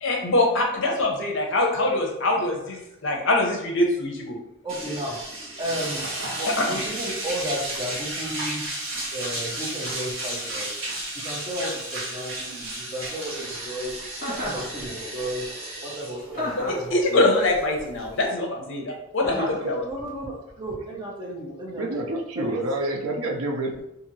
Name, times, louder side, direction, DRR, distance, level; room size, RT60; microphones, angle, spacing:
voice 1, 0.0-4.4 6.5-6.8 16.5-16.6 16.9-19.8, left 2 dB, 60° left, 1 dB, 0.6 m, -23 dB
voice 2, 4.6-5.2 5.6-8.8 9.1-10.7 11.2-13.9 14.4-15.5 15.8-17.3 19.4-22.0 22.4-22.6, right 1 dB, 20° right, -4 dB, 0.7 m, -33 dB
sound 1, 4.7-18.2, right 1 dB, 65° right, 1.0 m, -33 dB
voice 3, 13.3-14.0 18.9-19.0 21.7-23.8, right 1 dB, 80° right, 2 dB, 0.5 m, -29 dB
Chuckle chortle, 14.2-14.7 16.3-16.9 19.2-19.6, left 1 dB, 45° left, 1.1 m, -31 dB
2.7 x 2.6 x 2.7 m, 0.83 s
head